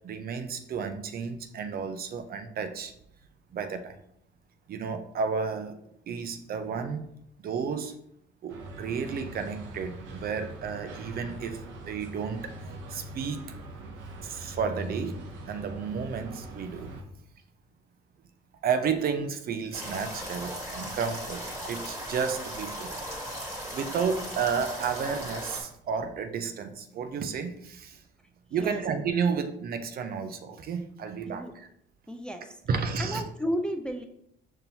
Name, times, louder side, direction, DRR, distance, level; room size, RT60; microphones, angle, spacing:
voice 1, 0.0-2.9 3.5-4.0 4.7-5.8 6.1-7.0 7.4-8.0 8.4-12.6 12.9-13.4 14.2-16.9 18.6-23.0 23.7-28.0 28.5-31.7 32.7-33.2, right 6 dB, 50° right, 0.5 m, -32 dB
sound 1, 8.5-17.0, right 1 dB, 85° right, 0.7 m, -42 dB
sound 2, 19.7-25.6, equal, 15° right, 1.6 m, -37 dB
voice 2, 28.5-28.8 31.2-31.5 32.1-32.6 33.0-34.0, equal, 5° left, 0.4 m, -33 dB
5.3 x 2.8 x 2.8 m
cardioid pair, 85°, 19 cm